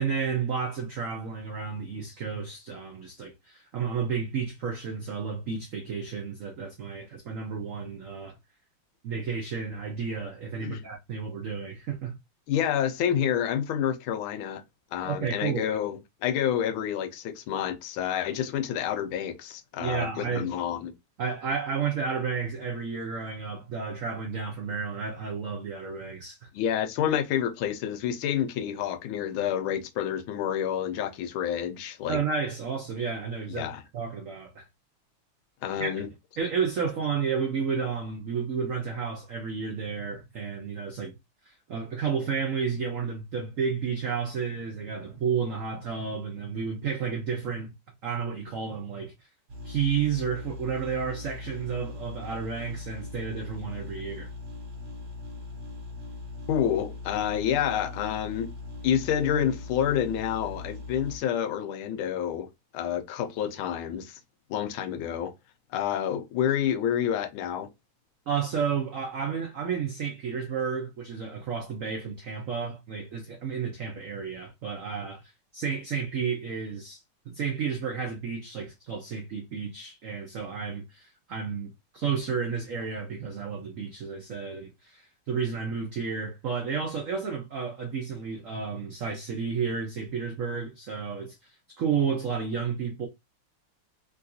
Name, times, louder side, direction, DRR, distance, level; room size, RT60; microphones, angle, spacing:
voice 1, 0.0-8.3 9.0-12.2 15.0-15.7 19.8-20.5 21.2-26.5 32.1-34.7 35.8-35.9 36.4-41.1 41.4-47.7 48.0-49.1 49.6-54.3 68.3-77.0 77.3-93.1, right 6 dB, 80° right, 0.7 m, -31 dB
voice 2, 12.5-14.6 14.9-20.9 26.5-32.2 33.6-33.8 35.6-36.1 56.5-58.5 58.8-62.5 62.7-64.2 64.5-65.3 65.7-67.7, left 9 dB, 90° left, 1.5 m, -28 dB
sound 1, 49.5-61.2, left 3 dB, 65° right, 1.8 m, -40 dB
3.8 x 2.4 x 2.5 m
omnidirectional pair, 2.2 m